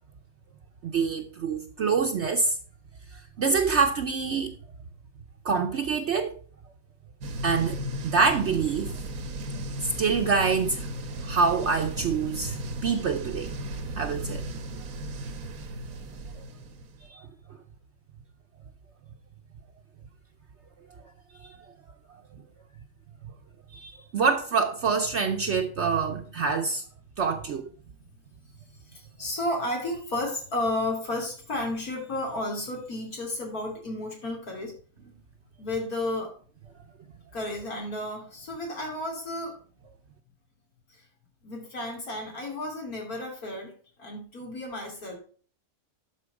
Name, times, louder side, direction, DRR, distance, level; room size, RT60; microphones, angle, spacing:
voice 1, 0.8-2.6 3.1-4.5 5.4-6.4 7.4-8.9 9.8-10.9 11.2-13.5 14.0-14.5 16.3-16.4 17.0-17.3 21.3-21.6 23.7-26.8 27.2-27.7, right 5 dB, 60° right, 0.9 m, -26 dB
sound 1, 7.2-17.1, right 1 dB, 80° right, 1.4 m, -36 dB
voice 2, 28.9-34.7 35.6-36.3 37.3-39.5 40.9-41.0 41.4-43.7 44.0-45.2, left 1 dB, 80° left, 3.4 m, -32 dB
12.0 x 4.5 x 4.8 m
omnidirectional pair, 1.5 m